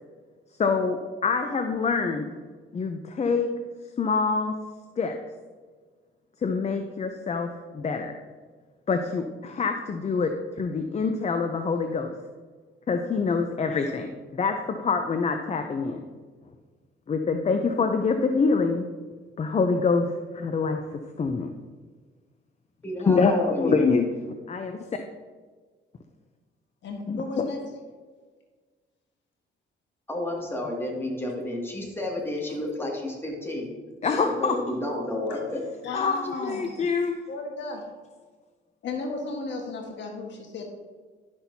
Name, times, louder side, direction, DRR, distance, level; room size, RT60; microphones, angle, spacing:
voice 1, 0.6-2.3 2.7-3.5 4.0-4.6 5.0-5.2 6.4-8.2 8.9-12.1 12.9-16.1 17.1-18.9 19.4-20.8 21.2-21.5 23.1-24.1 24.5-24.8 27.1-27.5 34.0-34.6 35.9-37.2, left 4 dB, 35° left, 6 dB, 0.6 m, -25 dB
voice 2, 22.8-23.8 30.1-33.7 34.2-35.6, left 1 dB, 10° left, -2 dB, 2.2 m, -31 dB
voice 3, 26.8-27.6 32.5-32.6 34.0-34.3 35.3-35.4 35.8-36.7 37.3-37.8 38.8-40.7, left 3 dB, 65° left, 1 dB, 1.5 m, -34 dB
11.5 x 6.0 x 2.8 m, 1.5 s
cardioid pair, 90°, 20 cm